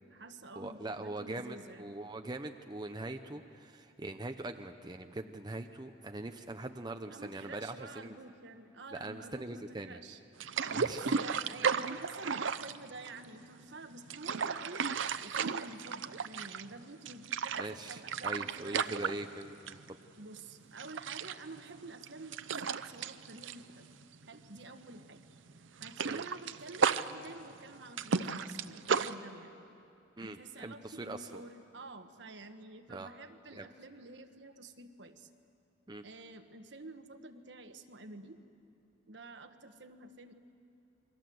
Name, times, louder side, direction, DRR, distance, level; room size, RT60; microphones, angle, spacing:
voice 1, 0.0-1.9 7.1-10.2 10.8-14.9 15.2-19.2 20.2-23.9 24.3-25.2 25.8-29.5 30.2-35.3 36.0-38.4 39.1-40.3, right 2 dB, 65° right, 7 dB, 1.3 m, -49 dB
voice 2, 0.6-8.2 8.9-10.0 10.7-11.2 17.6-19.8 26.0-26.2 30.2-31.4 32.9-33.1 33.5-33.7 35.9-36.0, right 2 dB, 20° right, 5 dB, 0.7 m, -42 dB
sound 1, 10.4-13.5 13.9-16.8 17.1-19.9 20.2-20.4 20.8-24.6 24.8-25.0 25.4-29.1, right 6 dB, 80° right, 0.7 m, -34 dB
29.0 x 22.5 x 7.8 m, 2.7 s
head